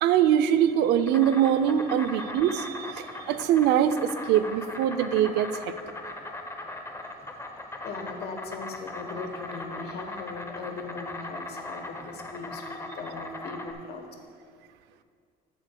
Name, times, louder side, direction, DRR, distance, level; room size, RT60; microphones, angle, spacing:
voice 1, 0.0-5.5, right 10 dB, 80° right, 11 dB, 0.4 m, -23 dB
Insect, 0.7-13.7, left 2 dB, 15° left, 0.6 m, -39 dB
voice 2, 7.8-14.0, left 4 dB, 70° left, 4 dB, 1.2 m, -39 dB
13.0 x 7.7 x 2.3 m, 2.2 s
cardioid pair, 110°, 17 cm